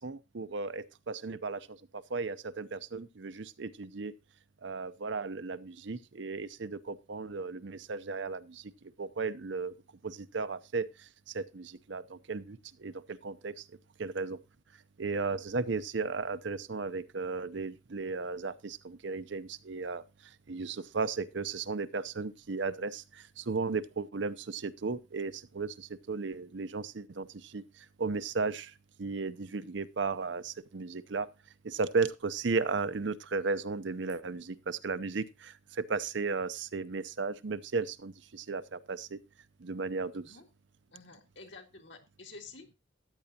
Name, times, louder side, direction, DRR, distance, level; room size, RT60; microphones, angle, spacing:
voice 1, 0.0-4.1 4.6-8.7 9.0-9.7 10.0-13.7 14.0-14.4 15.0-31.3 31.6-39.2 39.6-40.4, right 4 dB, 65° right, 0.7 m, -35 dB
voice 2, 40.9-42.7, left 3 dB, 65° left, 2.0 m, -50 dB
14.0 x 9.3 x 2.8 m
head